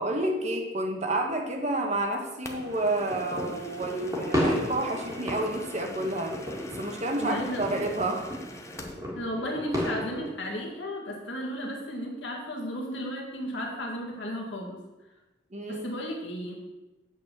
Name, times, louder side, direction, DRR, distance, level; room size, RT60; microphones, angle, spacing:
voice 1, 0.0-6.3 6.8-8.3 15.5-15.8, right 1 dB, 40° right, 2 dB, 1.2 m, -29 dB
sound 1, 2.4-9.0, left 2 dB, 15° left, 0.7 m, -45 dB
sound 2, 2.5-10.3, equal, 20° right, 1.8 m, -34 dB
voice 2, 7.2-7.8 9.1-14.8 15.7-16.6, equal, 75° left, 0 dB, 1.8 m, -34 dB
8.2 x 4.2 x 7.1 m, 1.1 s
head